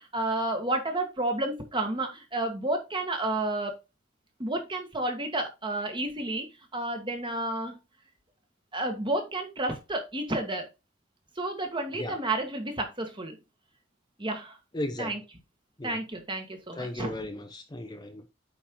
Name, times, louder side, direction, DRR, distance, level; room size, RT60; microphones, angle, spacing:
voice 1, 0.0-3.8 4.4-7.8 8.7-10.7 11.3-13.4 14.2-14.6 15.0-15.2 15.8-17.2, right 2 dB, 25° right, 1.7 m, -31 dB
voice 2, 14.7-15.1 15.8-16.0 16.8-18.3, left 1 dB, 20° left, 0.7 m, -35 dB
8.6 x 4.6 x 3.7 m
head